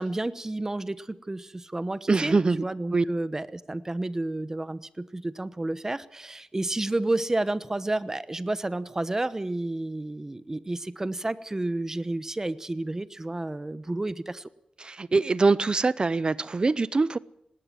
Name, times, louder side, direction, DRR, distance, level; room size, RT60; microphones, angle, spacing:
voice 1, 0.0-14.5, right 2 dB, 20° right, 1.0 m, -31 dB
voice 2, 2.1-2.6 2.9-3.0 14.8-17.2, right 3 dB, 40° right, 0.7 m, -23 dB
19.5 x 18.5 x 7.7 m
wide cardioid pair, 115°, 3 cm